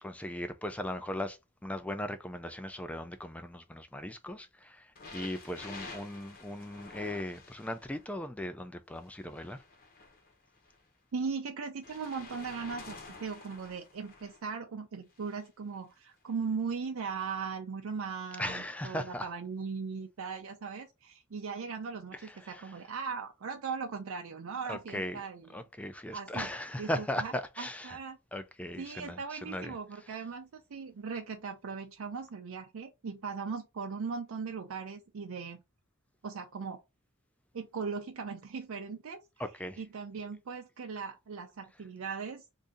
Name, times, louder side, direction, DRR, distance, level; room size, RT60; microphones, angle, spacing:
voice 1, 0.0-9.6 18.4-19.3 22.1-22.7 24.7-25.2 25.5-28.0 28.3-29.8 39.4-39.8, left 1 dB, 5° left, 0.4 m, -38 dB
sound 1, 4.9-8.1 9.0-10.8 11.8-14.4 15.1-15.5 16.3-16.4, left 3 dB, 45° left, 1.0 m, -49 dB
voice 2, 11.1-25.5 26.1-26.5 26.8-28.2 28.8-35.6 36.2-36.8 37.5-39.2 39.8-42.4, right 5 dB, 85° right, 0.5 m, -38 dB
2.7 x 2.6 x 3.5 m
head